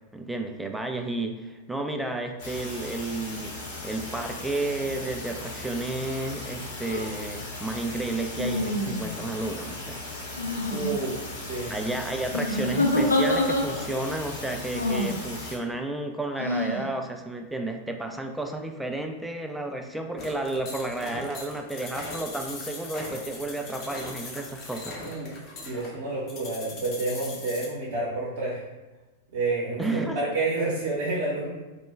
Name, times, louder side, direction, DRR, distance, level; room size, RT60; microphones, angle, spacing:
voice 1, 0.1-3.5 3.8-10.0 11.7-24.9 29.8-30.2, right 2 dB, 5° right, 3 dB, 0.3 m, -32 dB
sound 1, 2.4-15.6, left 2 dB, 55° left, 1.1 m, -38 dB
sound 2, 6.8-7.1 8.4-9.3 10.4-10.9 12.3-14.0 14.7-15.2 16.4-16.9, left 1 dB, 85° left, 0.4 m, -26 dB
voice 2, 10.7-11.7 25.0-25.3 25.6-28.6 29.3-31.5, right 2 dB, 60° right, -6 dB, 0.7 m, -29 dB
sound 3, 20.2-27.7, left 2 dB, 35° left, 0.6 m, -40 dB
2.2 x 2.1 x 3.1 m, 1.2 s
figure-of-eight pair, 95°, 0 cm